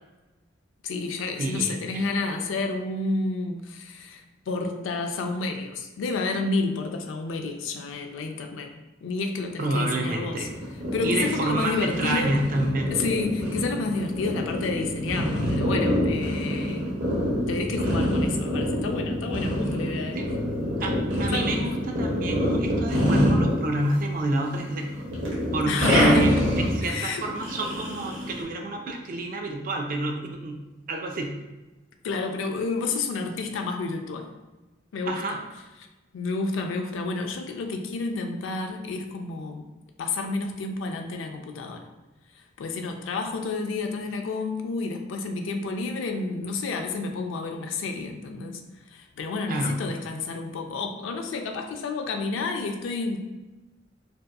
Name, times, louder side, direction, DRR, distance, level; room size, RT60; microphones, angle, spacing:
voice 1, 0.8-8.7 9.0-10.5 10.9-12.3 12.9-16.9 17.5-20.2 21.3-21.6 25.7-26.5 26.8-27.2 32.0-34.3 34.9-35.4 36.1-39.7 40.0-41.8 42.6-48.6 48.9-53.2, left 3 dB, 80° left, 4 dB, 0.3 m, -30 dB
voice 2, 1.4-2.1 9.6-10.5 11.0-12.9 20.1-20.3 20.8-24.9 25.5-30.6 30.9-31.3 35.1-35.4 49.5-49.7, right 2 dB, 45° right, 3 dB, 0.3 m, -28 dB
sound 1, 10.4-24.2 24.5-28.4, equal, 75° right, 0.8 m, -26 dB
2.7 x 2.3 x 2.2 m, 1.1 s
head